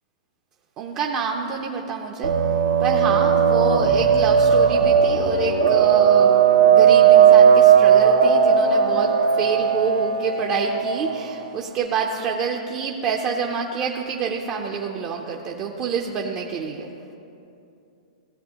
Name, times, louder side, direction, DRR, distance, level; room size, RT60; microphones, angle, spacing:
voice 1, 0.8-2.3 2.8-9.1 9.4-16.9, right 6 dB, 20° right, 0 dB, 0.4 m, -27 dB
sound 1, 2.2-11.5, right 7 dB, 85° right, 0.9 m, -16 dB
15.5 x 7.5 x 2.8 m, 2.7 s
hypercardioid pair, 170°, 4 cm